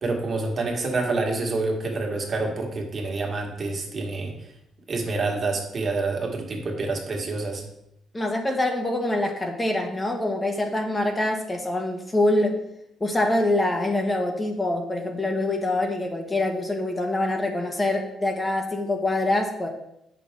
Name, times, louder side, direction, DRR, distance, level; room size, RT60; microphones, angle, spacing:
voice 1, 0.0-4.3 4.9-7.6, right 3 dB, 45° right, 1 dB, 1.8 m, -27 dB
voice 2, 8.1-12.6 13.0-19.7, left 1 dB, 20° left, 2 dB, 1.3 m, -25 dB
8.0 x 6.0 x 3.7 m, 0.81 s
cardioid pair, 90°, 0 cm